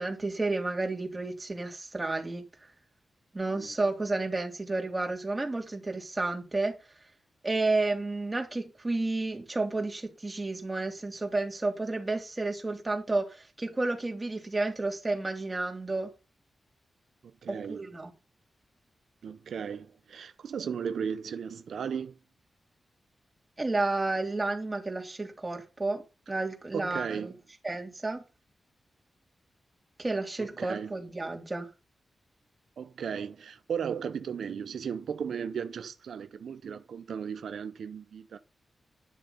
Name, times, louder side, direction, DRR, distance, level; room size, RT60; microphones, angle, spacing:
voice 1, 0.0-2.4 3.3-6.8 7.4-16.1 17.5-18.1 23.6-27.3 27.6-28.2 30.0-31.7, right 2 dB, 20° right, 3.4 m, -31 dB
voice 2, 17.4-17.9 19.2-22.2 26.7-27.3 30.4-30.9 32.8-38.4, right 7 dB, 85° right, 0.7 m, -36 dB
11.5 x 6.7 x 5.7 m
wide cardioid pair, 105°, 0 cm